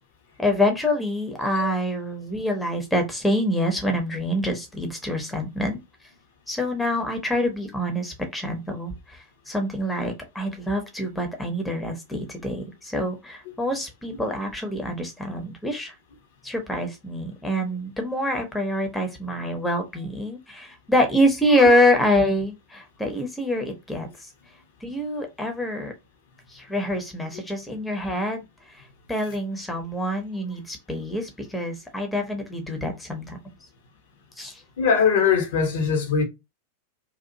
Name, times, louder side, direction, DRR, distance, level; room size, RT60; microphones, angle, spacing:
voice 1, 0.4-5.8 6.5-16.0 16.4-24.3 24.8-25.9 26.5-33.4 34.4-34.6, left 1 dB, 5° left, 0.8 m, -26 dB
voice 2, 34.8-36.2, left 6 dB, 55° left, 0.8 m, -21 dB
2.7 x 2.4 x 2.6 m
figure-of-eight pair, 90°, 0 cm